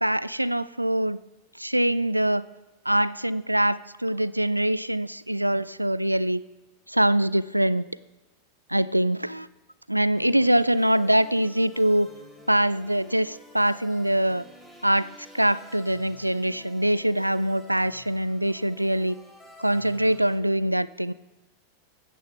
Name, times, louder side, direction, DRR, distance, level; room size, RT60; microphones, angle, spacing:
voice 1, 0.0-1.2 1.6-2.4 2.9-6.4 6.9-7.8 8.7-9.5 9.9-12.1 12.5-14.4 14.8-15.1 15.3-19.2 19.6-21.1, right 1 dB, 85° right, 19 dB, 0.4 m, -23 dB
sound 1, 10.1-20.4, left 2 dB, ahead, 3.5 m, -50 dB
15.0 x 9.9 x 5.8 m, 1.1 s
figure-of-eight pair, 90°, 0 cm